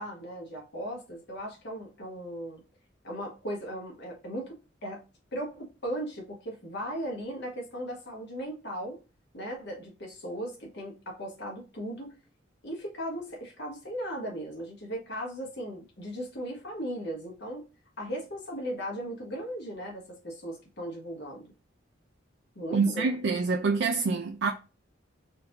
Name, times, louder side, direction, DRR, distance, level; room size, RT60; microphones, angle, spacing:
voice 1, 0.0-2.6 3.0-5.0 5.3-9.0 9.3-12.2 12.6-17.7 18.0-21.5 22.5-23.1, equal, 60° left, 1.4 m, -37 dB
voice 2, 22.7-24.5, right 4 dB, 65° right, 0.4 m, -26 dB
4.3 x 2.7 x 2.9 m
head